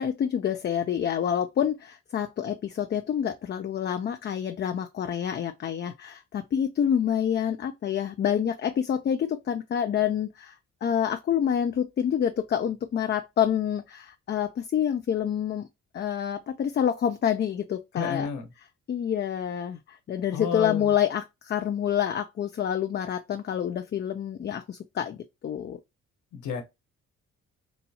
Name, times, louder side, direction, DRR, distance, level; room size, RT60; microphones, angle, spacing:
voice 1, 0.0-15.7 15.9-18.3 18.9-25.8, left 9 dB, 35° left, 0.4 m, -27 dB
voice 2, 17.9-18.5 20.3-20.9 26.3-26.6, left 7 dB, 80° left, 1.1 m, -31 dB
4.0 x 2.3 x 2.7 m
cardioid pair, 90°, 30 cm